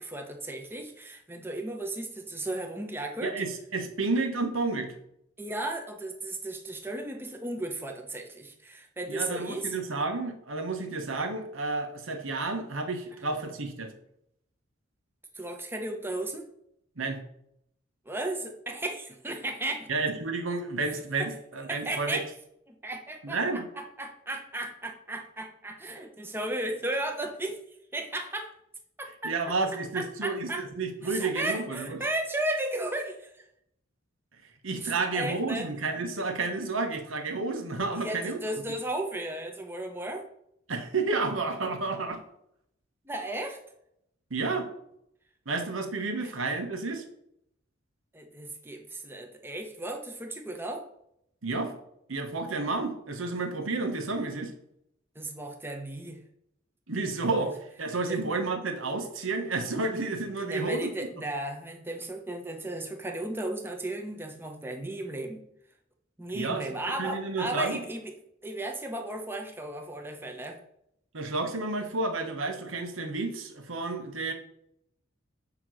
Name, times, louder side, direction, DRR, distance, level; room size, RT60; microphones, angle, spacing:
voice 1, 0.0-3.3 5.4-9.7 15.3-16.4 18.1-19.9 21.2-21.3 21.7-22.3 22.7-27.6 27.9-28.5 29.0-29.3 29.9-30.6 31.0-33.4 34.8-35.7 37.9-40.2 43.1-43.6 46.2-46.3 48.1-50.8 55.1-56.2 57.4-57.5 58.1-58.2 60.4-65.4 66.2-68.1 68.4-70.6, right 1 dB, 10° right, 3 dB, 0.8 m, -35 dB
voice 2, 3.2-4.9 9.1-13.9 17.0-17.2 19.9-22.2 23.2-23.7 29.2-32.0 34.6-38.4 40.7-42.2 44.3-44.7 45.5-47.0 51.4-51.8 52.1-54.5 56.9-60.9 66.3-66.6 67.0-67.8 71.1-74.3, right 3 dB, 85° right, 5 dB, 1.1 m, -31 dB
8.7 x 3.0 x 6.3 m, 0.75 s
head